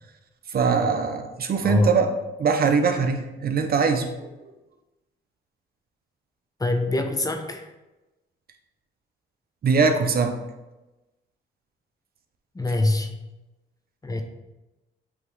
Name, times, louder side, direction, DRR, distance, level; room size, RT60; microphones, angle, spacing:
voice 1, 0.5-2.1 2.4-4.3 9.6-10.4, right 5 dB, 50° right, 6 dB, 0.8 m, -22 dB
voice 2, 1.6-1.9 6.6-7.7 12.5-13.1 14.0-14.2, left 2 dB, 20° left, 5 dB, 0.8 m, -24 dB
8.4 x 3.1 x 3.9 m, 1.0 s
cardioid pair, 90°, 20 cm